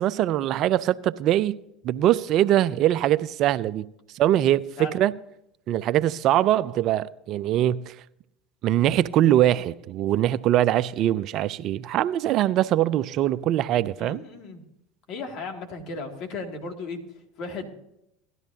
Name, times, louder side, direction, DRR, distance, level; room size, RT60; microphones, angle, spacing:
voice 1, 0.0-1.6 1.8-3.9 4.1-5.1 5.7-7.9 8.6-14.2, right 12 dB, 50° right, 0.4 m, -22 dB
voice 2, 14.0-14.6 15.1-17.0 17.4-17.7, left 4 dB, 55° left, 2.3 m, -35 dB
17.5 x 12.5 x 2.7 m
hypercardioid pair, 80°, 0 cm